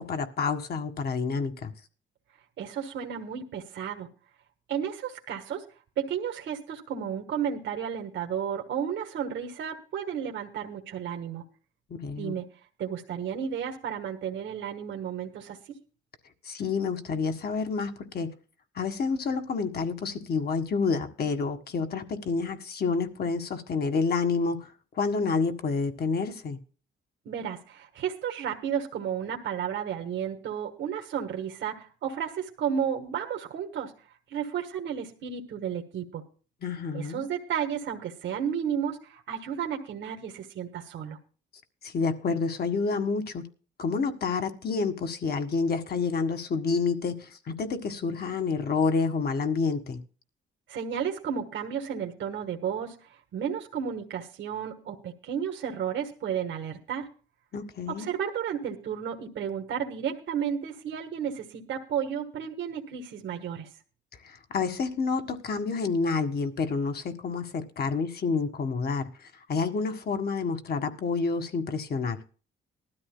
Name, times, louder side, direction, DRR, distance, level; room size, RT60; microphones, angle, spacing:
voice 1, 0.0-1.7 11.9-12.4 16.4-18.3 18.7-24.7 25.0-26.6 36.6-37.2 41.8-43.4 43.8-50.0 57.5-58.1 64.2-72.2, left 4 dB, 50° left, 7 dB, 1.7 m, -29 dB
voice 2, 2.6-4.1 4.7-5.6 6.0-11.4 12.2-12.4 12.8-15.6 27.2-33.9 34.3-36.2 36.9-41.2 50.7-57.1 57.9-63.7, right 8 dB, 70° right, 3 dB, 1.6 m, -32 dB
19.5 x 13.0 x 2.2 m, 0.37 s
cardioid pair, 90°, 20 cm